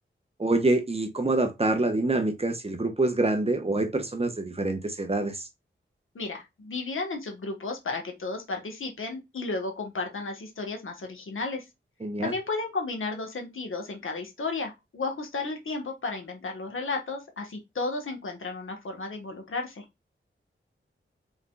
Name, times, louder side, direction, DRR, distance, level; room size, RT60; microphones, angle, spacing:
voice 1, 0.4-5.5 12.0-12.3, right 2 dB, 30° right, 1.0 m, -26 dB
voice 2, 6.1-11.6 12.2-19.8, left 3 dB, 85° left, 1.4 m, -33 dB
5.1 x 3.9 x 2.4 m
wide cardioid pair, 80°, 20 cm